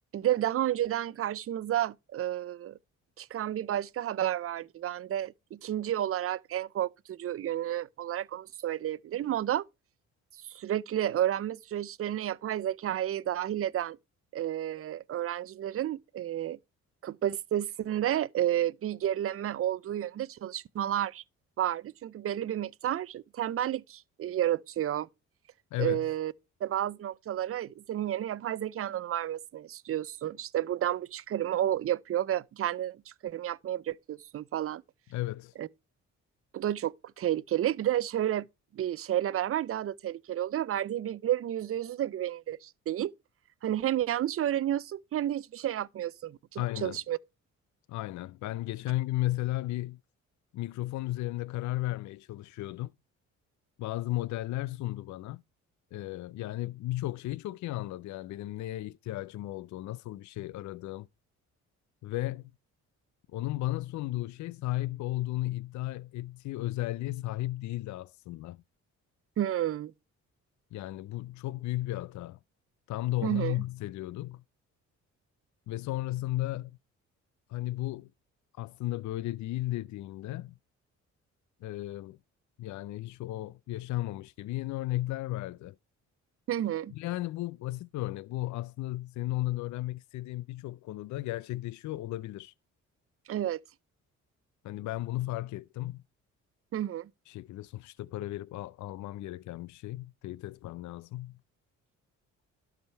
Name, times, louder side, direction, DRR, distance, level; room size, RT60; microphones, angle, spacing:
voice 1, 0.1-2.7 3.2-9.6 10.5-14.0 14.3-16.6 17.0-21.2 21.6-25.1 25.8-26.3 26.6-34.8 35.6-35.7 36.5-38.5 38.7-43.1 43.6-47.2 69.4-69.9 73.2-73.5 86.5-86.9 93.3-93.6 96.7-97.1, right 12 dB, 50° right, 0.5 m, -31 dB
voice 2, 25.7-26.1 35.1-35.5 46.6-47.0 47.9-50.0 50.5-52.9 53.8-55.4 55.9-61.1 62.0-62.5 63.3-68.6 70.7-72.4 72.9-74.4 75.7-76.8 77.5-78.1 78.6-80.6 81.6-82.2 82.6-85.8 86.9-92.5 94.6-96.0 97.3-101.4, left 16 dB, 70° left, 0.5 m, -34 dB
12.0 x 4.9 x 4.5 m
cardioid pair, 90°, 30 cm